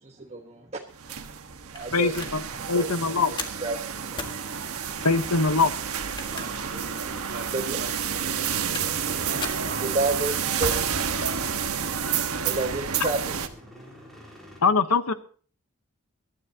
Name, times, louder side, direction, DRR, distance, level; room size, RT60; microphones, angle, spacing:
voice 1, 0.0-0.8 1.7-2.1 2.5-2.9 3.2-4.6 4.9-5.0 7.5-7.8 9.8-11.1 12.4-13.4, right 2 dB, 30° right, 2 dB, 1.2 m, -31 dB
sound 1, 0.9-13.5, right 7 dB, 75° right, 1.4 m, -30 dB
sound 2, 1.8-2.4 2.8-3.0 3.4-3.7 4.2-4.4 5.9-6.7 7.1-7.2 8.3-9.1 9.4-9.7, left 3 dB, 20° left, 1.7 m, -37 dB
voice 2, 1.9-2.4 2.7-3.3 5.0-5.7 14.6-15.1, left 4 dB, 80° left, 11 dB, 1.1 m, -22 dB
sound 3, 3.9-14.6, equal, ahead, 4.8 m, -49 dB
voice 3, 6.3-7.5 7.8-8.3 9.0-10.0, right 2 dB, 50° right, 3 dB, 3.2 m, -42 dB
22.5 x 13.0 x 2.9 m, 0.42 s
head